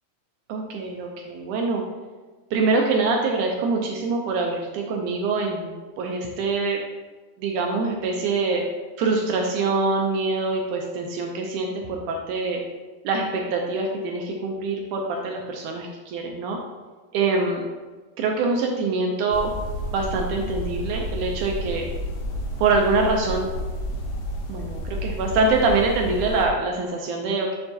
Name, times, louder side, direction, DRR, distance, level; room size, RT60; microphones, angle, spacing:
voice 1, 0.5-1.8 2.5-5.7 6.0-6.8 7.4-8.6 9.0-12.6 13.0-16.6 17.1-17.6 18.2-19.5 19.9-21.8 22.6-23.5 24.5-27.6, right 3 dB, 80° right, 1 dB, 1.8 m, -24 dB
sound 1, 19.3-26.5, equal, 70° left, 2.1 m, -31 dB
6.7 x 6.7 x 2.7 m, 1.3 s
omnidirectional pair, 4.0 m